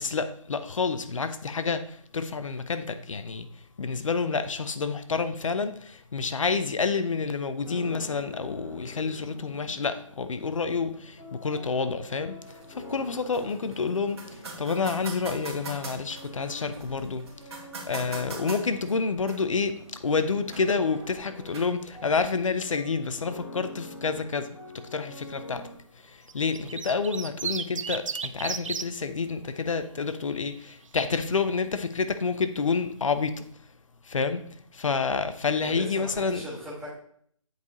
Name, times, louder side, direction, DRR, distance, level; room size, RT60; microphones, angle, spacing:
voice 1, 0.0-3.5 3.8-12.4 12.8-14.2 14.6-17.2 17.9-19.8 20.0-24.5 24.9-25.6 26.3-33.3 34.1-34.4 34.7-36.4, left 4 dB, 70° left, 11 dB, 0.8 m, -28 dB
sound 1, 7.6-25.7, left 1 dB, 25° left, 3.3 m, -46 dB
sound 2, 12.4-22.5, right 3 dB, 50° right, 2.2 m, -44 dB
sound 3, 26.3-28.9 30.1-30.6, right 6 dB, 65° right, 0.5 m, -33 dB
voice 2, 35.6-37.0, equal, ahead, -10 dB, 2.6 m, -39 dB
8.2 x 4.9 x 4.1 m, 0.62 s
figure-of-eight pair, 150°, 17 cm